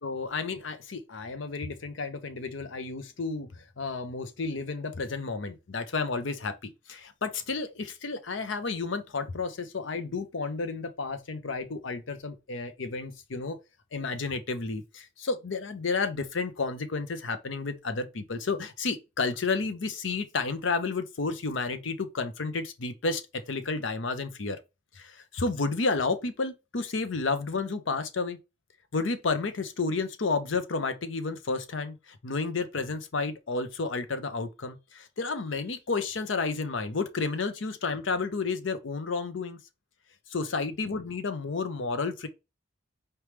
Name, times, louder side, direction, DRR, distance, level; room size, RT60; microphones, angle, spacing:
voice 1, 0.0-13.6 13.9-24.6 24.9-28.4 28.9-39.6 40.3-42.3, left 4 dB, 70° left, 0.7 m, -31 dB
4.6 x 3.1 x 3.3 m
head